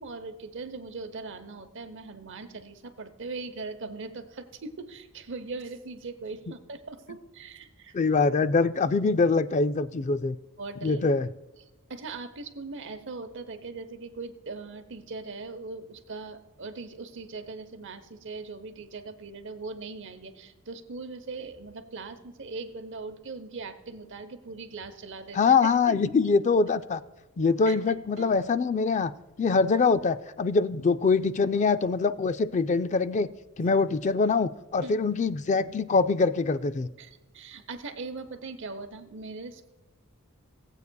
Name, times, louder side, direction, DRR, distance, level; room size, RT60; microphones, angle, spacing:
voice 1, 0.0-7.9 10.6-11.0 11.9-26.3 27.7-28.3 34.8-35.0 37.0-39.7, right 3 dB, 60° right, 9 dB, 0.9 m, -40 dB
voice 2, 7.9-10.4 10.8-11.3 25.3-27.0 27.4-29.1 29.4-33.3 33.6-36.9, left 4 dB, 35° left, 13 dB, 0.3 m, -24 dB
18.0 x 8.1 x 2.3 m, 1.1 s
head